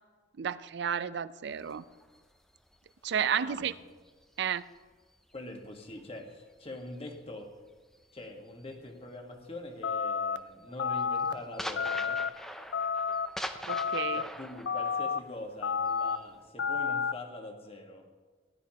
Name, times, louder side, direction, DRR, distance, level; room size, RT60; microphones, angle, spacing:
voice 1, 0.4-1.8 3.0-3.7 4.4-4.6 13.7-14.2, right 8 dB, 60° right, 16 dB, 0.4 m, -32 dB
sound 1, 1.5-5.3 5.7-9.1 9.4-9.7 10.1-16.5, equal, ahead, 0.5 m, -44 dB
voice 2, 3.3-3.7 5.3-7.5 8.1-12.2 14.1-18.1, left 1 dB, 30° left, 3 dB, 1.5 m, -44 dB
sound 2, 9.8-10.4 10.8-11.3 11.8-12.3 12.7-13.3 13.7-14.2 14.7-15.2 15.6-16.2 16.6-17.1, left 6 dB, 60° left, 0.5 m, -30 dB
17.5 x 11.0 x 2.9 m, 1.4 s
head